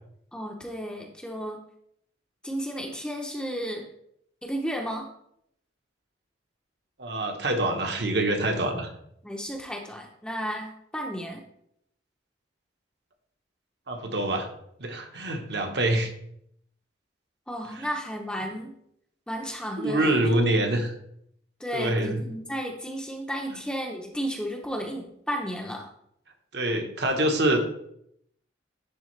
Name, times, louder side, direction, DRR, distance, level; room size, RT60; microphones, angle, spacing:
voice 1, 0.3-1.6 2.4-3.9 4.4-5.1 9.2-11.4 17.5-18.7 19.3-20.2 21.6-25.9, equal, 5° left, 1 dB, 0.7 m, -33 dB
voice 2, 7.0-8.9 13.9-14.5 14.8-16.1 19.8-20.9 21.7-22.2 26.5-27.7, right 1 dB, 60° right, 3 dB, 1.1 m, -25 dB
10.5 x 3.7 x 3.2 m, 0.72 s
head